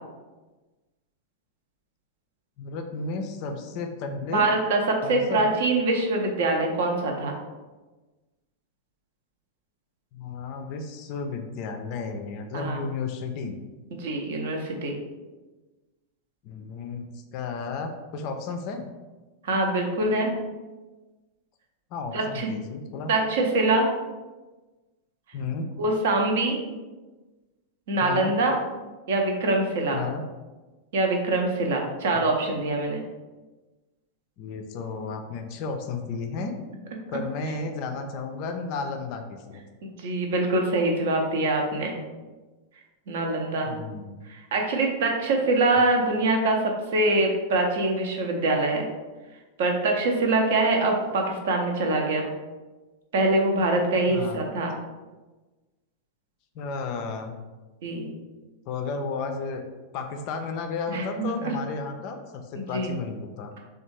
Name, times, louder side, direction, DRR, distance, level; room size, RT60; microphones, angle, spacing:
voice 1, 2.6-4.4 5.0-5.4 10.1-13.6 16.4-18.9 21.9-23.1 25.3-25.7 28.0-28.3 29.9-30.2 32.2-32.3 34.4-36.5 37.1-39.6 43.6-44.2 45.8-45.9 54.1-54.5 56.5-57.4 58.7-59.6 59.9-63.5, left 4 dB, 45° left, 5 dB, 0.3 m, -33 dB
voice 2, 4.3-7.3 12.5-12.8 14.0-15.0 19.4-20.3 22.1-22.5 23.1-23.9 25.8-26.6 27.9-28.6 29.1-30.0 30.9-33.0 39.8-42.0 43.1-43.7 44.3-48.9 49.6-52.3 53.1-54.7 57.8-58.1 60.9-61.5 62.6-62.9, right 2 dB, 55° right, 2 dB, 0.5 m, -24 dB
3.4 x 2.3 x 3.0 m, 1.2 s
figure-of-eight pair, 90°, 0 cm